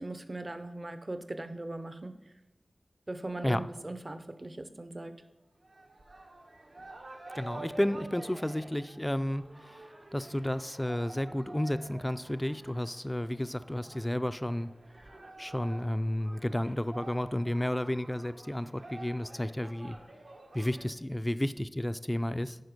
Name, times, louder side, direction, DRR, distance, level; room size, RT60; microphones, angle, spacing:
voice 1, 0.0-2.1 3.1-5.1, right 2 dB, 40° right, 9 dB, 0.7 m, -39 dB
sound 1, 5.6-20.9, right 2 dB, 75° right, 1.2 m, -49 dB
voice 2, 7.3-9.9 10.1-14.7 15.1-20.0 20.5-22.6, left 1 dB, 15° left, 12 dB, 0.4 m, -32 dB
10.5 x 4.4 x 5.2 m, 1.0 s
cardioid pair, 45°, 0 cm